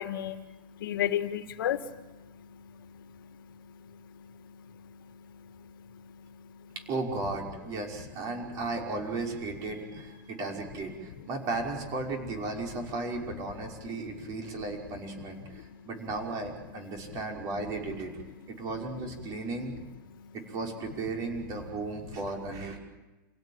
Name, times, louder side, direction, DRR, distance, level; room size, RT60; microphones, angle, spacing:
voice 1, 0.0-6.7 10.2-10.4 15.5-15.9 20.1-20.4, left 11 dB, 90° left, 1.9 m, -37 dB
voice 2, 6.9-18.1 18.5-19.8 20.3-22.8, right 3 dB, 30° right, 5.7 m, -35 dB
28.5 x 17.0 x 9.0 m
supercardioid pair, 160°, 11 cm